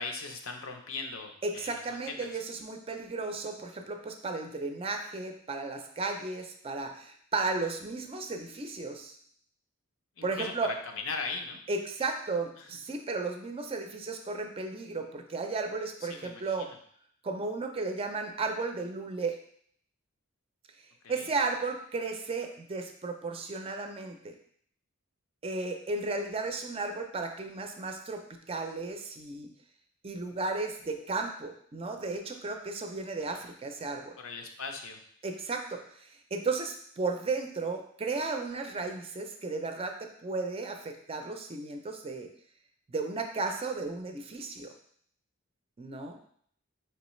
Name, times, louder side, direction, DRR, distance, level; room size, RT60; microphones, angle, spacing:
voice 1, 0.0-2.1 10.2-10.5 10.9-11.6 12.6-12.7 16.1-16.8 21.0-21.3 34.2-35.0, left 4 dB, 75° left, 4 dB, 0.6 m, -39 dB
voice 2, 1.4-9.1 10.2-10.7 11.7-16.7 17.2-19.4 21.1-24.3 25.4-29.5 30.0-34.2 35.2-42.3 42.9-44.7 45.8-46.2, right 3 dB, 30° right, 4 dB, 0.4 m, -34 dB
4.5 x 3.1 x 3.1 m, 0.62 s
head